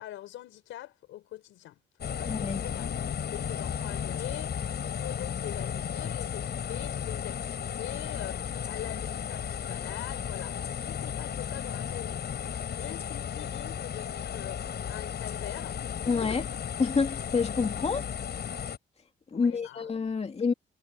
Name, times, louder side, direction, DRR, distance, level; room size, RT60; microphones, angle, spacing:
voice 1, 0.0-1.8 2.1-2.9 3.3-12.3 12.7-16.5 19.3-19.9, left 14 dB, 85° left, 5.0 m, -43 dB
sound 1, 2.0-18.8, left 8 dB, 55° left, 6.7 m, -34 dB
voice 2, 2.3-2.6 16.1-16.4 16.8-18.0 19.3-20.5, left 5 dB, 30° left, 2.2 m, -28 dB
cardioid pair, 90°, 20 cm